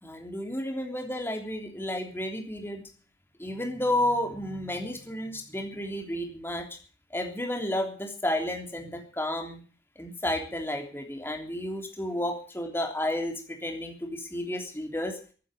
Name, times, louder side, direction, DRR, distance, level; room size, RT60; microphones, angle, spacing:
voice 1, 0.0-2.8 3.4-6.7 7.1-9.6 10.0-15.2, left 1 dB, 15° left, 3 dB, 3.2 m, -32 dB
15.0 x 9.4 x 9.1 m, 0.41 s
head